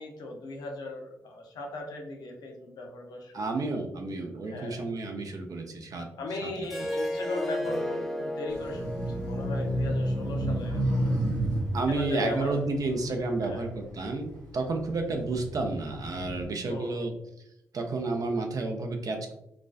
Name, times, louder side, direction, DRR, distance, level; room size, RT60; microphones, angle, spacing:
voice 1, 0.0-3.7 4.5-4.8 6.2-11.1 11.9-12.6 13.4-13.6 16.7-17.1, left 2 dB, 75° left, 2 dB, 0.5 m, -38 dB
voice 2, 3.3-6.1 6.4-6.9 11.7-17.1 17.7-19.3, right 3 dB, 55° right, 4 dB, 0.5 m, -31 dB
Harp, 6.6-11.8, left 1 dB, ahead, 0.4 m, -35 dB
sound 1, 8.5-14.1 14.6-16.4, right 1 dB, 85° right, 0.9 m, -31 dB
2.4 x 2.2 x 2.3 m, 0.82 s
supercardioid pair, 45°, 7 cm